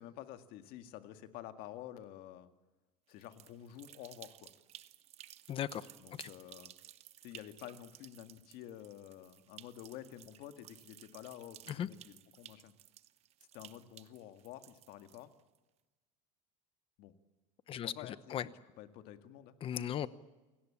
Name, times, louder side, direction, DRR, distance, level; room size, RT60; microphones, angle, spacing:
voice 1, 0.0-2.5 3.1-4.5 6.0-6.7 7.2-12.7 13.5-15.3 17.0-17.1 17.7-18.5 18.8-19.5, left 12 dB, 55° left, 8 dB, 1.9 m, -50 dB
sound 1, 3.1-15.6, right 13 dB, 35° right, 0.9 m, -56 dB
voice 2, 5.5-5.9 6.2-6.3 11.7-11.9 17.7-18.5 19.6-20.1, left 10 dB, 30° left, 16 dB, 0.9 m, -37 dB
28.5 x 18.0 x 8.7 m, 1.2 s
cardioid pair, 165°, 18 cm